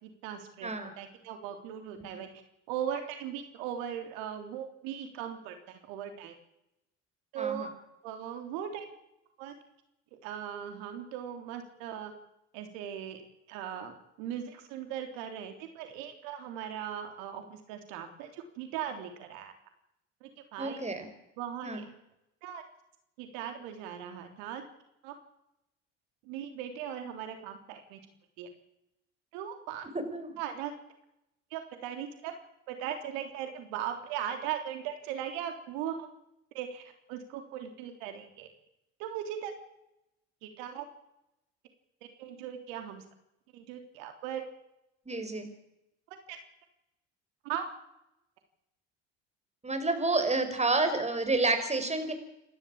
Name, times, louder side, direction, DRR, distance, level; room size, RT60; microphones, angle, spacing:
voice 1, 0.0-2.3 2.7-6.4 7.3-7.7 8.0-8.9 9.4-9.5 10.2-12.1 12.5-13.2 13.5-19.5 20.2-20.8 21.4-21.8 22.4-22.6 23.2-24.6 25.0-25.1 26.2-28.0 28.4-28.5 29.3-29.9 30.4-30.7 31.5-32.3 32.7-36.1 36.5-38.5 39.0-39.5 40.4-40.9 42.2-43.0 43.5-44.5 46.1-46.4 47.4-47.6, right 9 dB, 75° right, 6 dB, 3.4 m, -38 dB
voice 2, 7.4-7.7 20.6-21.1 21.6-21.8 29.9-30.4 45.1-45.5 49.6-52.1, right 3 dB, 20° right, 8 dB, 5.9 m, -29 dB
28.5 x 12.5 x 8.7 m, 0.85 s
hypercardioid pair, 70°, 35 cm